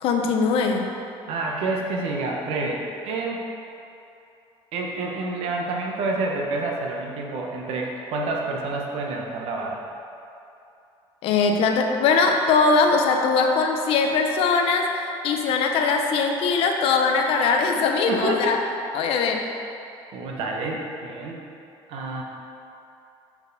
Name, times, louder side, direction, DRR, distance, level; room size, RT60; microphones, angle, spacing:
voice 1, 0.0-0.9 11.2-18.6 19.0-19.5, left 4 dB, 60° left, 3 dB, 0.6 m, -21 dB
voice 2, 1.3-3.4 4.7-9.8 17.5-17.6 18.1-18.7 20.1-21.5 21.9-22.2, right 2 dB, 65° right, 0 dB, 0.8 m, -28 dB
5.7 x 4.4 x 4.0 m, 2.7 s
cardioid pair, 165°, 11 cm